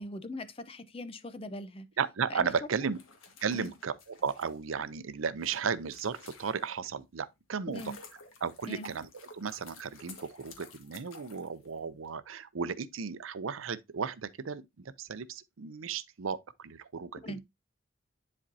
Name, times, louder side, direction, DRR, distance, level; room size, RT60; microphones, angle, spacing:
voice 1, 0.0-1.9 2.3-2.5 3.5-3.7 7.7-8.0 8.7-8.9 17.2-17.4, left 1 dB, 30° left, 0.7 m, -40 dB
voice 2, 2.0-3.0 3.4-7.8 8.4-9.1 9.4-17.4, right 6 dB, 85° right, 0.6 m, -35 dB
sound 1, 2.8-6.9 7.4-12.1, left 4 dB, 90° left, 1.6 m, -53 dB
10.0 x 4.3 x 2.7 m
head